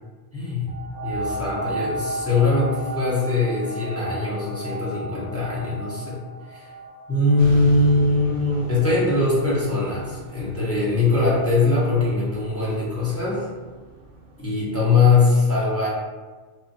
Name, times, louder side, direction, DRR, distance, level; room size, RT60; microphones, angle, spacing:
voice 1, 0.3-0.7 1.0-6.2 6.5-6.7 7.1-13.5 14.4-15.9, left 3 dB, 20° left, -8 dB, 0.4 m, -21 dB
sound 1, 0.7-9.9 10.6-10.7, right 1 dB, 50° left, 1.0 m, -34 dB
sound 2, 7.4-14.4, right 1 dB, 55° right, 0.8 m, -38 dB
2.8 x 2.2 x 2.6 m, 1.3 s
omnidirectional pair, 1.2 m